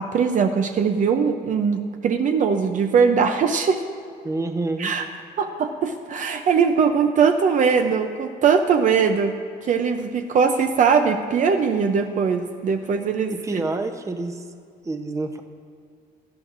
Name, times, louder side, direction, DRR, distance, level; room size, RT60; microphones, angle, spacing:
voice 1, 0.0-3.8 4.8-5.0 5.4-9.3 9.6-13.3, right 6 dB, 50° right, 6 dB, 0.6 m, -20 dB
voice 2, 4.2-4.9 13.3-14.5 14.8-15.4, right 2 dB, 20° right, 5 dB, 0.8 m, -27 dB
17.5 x 11.0 x 2.6 m, 2.3 s
cardioid pair, 110°, 17 cm